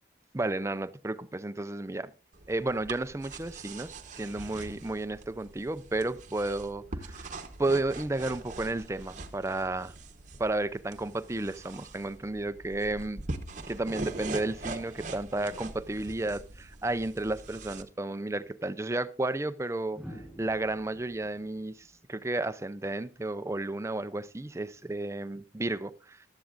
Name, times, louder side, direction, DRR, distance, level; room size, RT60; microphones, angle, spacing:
voice 1, 0.3-2.1 2.5-7.3 7.6-9.9 10.4-13.3 13.7-20.0 20.4-26.2, right 2 dB, 15° right, 0.5 m, -32 dB
sound 1, 2.3-17.8, right 2 dB, 40° right, 0.9 m, -43 dB
sound 2, 18.4-18.5 19.9-22.9 24.5-24.8, equal, ahead, 3.7 m, -49 dB
15.0 x 11.5 x 2.5 m
head